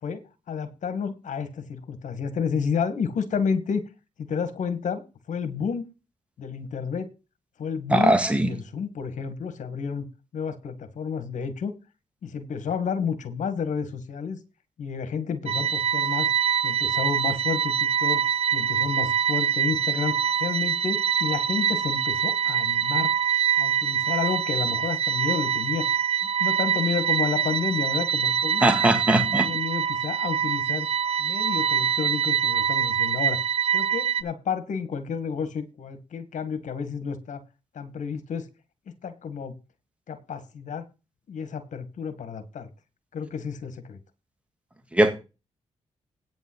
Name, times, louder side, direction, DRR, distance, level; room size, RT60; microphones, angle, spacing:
voice 1, 0.0-3.8 4.2-5.9 6.4-7.1 7.6-8.1 8.5-10.1 10.3-11.7 12.2-14.4 14.8-16.3 16.6-18.2 18.5-23.1 23.6-25.9 26.4-28.6 29.2-30.9 31.2-33.4 33.7-37.4 37.7-38.5 39.0-39.6 40.1-40.8 41.3-42.7 43.1-44.0, left 6 dB, 70° left, 1.9 m, -30 dB
voice 2, 7.9-8.5 28.6-29.5 44.9-45.1, right 1 dB, 10° right, 1.9 m, -20 dB
sound 1, 15.5-34.2, right 8 dB, 50° right, 0.8 m, -24 dB
9.4 x 5.3 x 8.1 m
cardioid pair, 65°, 13 cm